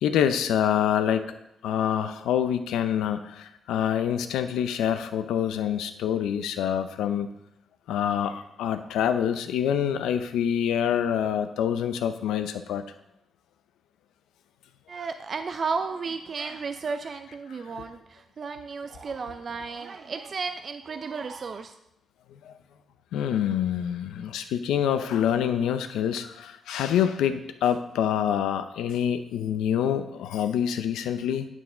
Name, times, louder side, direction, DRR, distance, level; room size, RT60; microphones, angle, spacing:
voice 1, 0.0-1.4 1.6-7.3 7.9-12.8 22.4-22.5 23.1-31.5, left 9 dB, 85° left, 10 dB, 0.6 m, -26 dB
voice 2, 14.9-21.7, right 5 dB, 55° right, 8 dB, 0.5 m, -33 dB
9.2 x 6.1 x 3.8 m, 0.82 s
supercardioid pair, 60°, 0 cm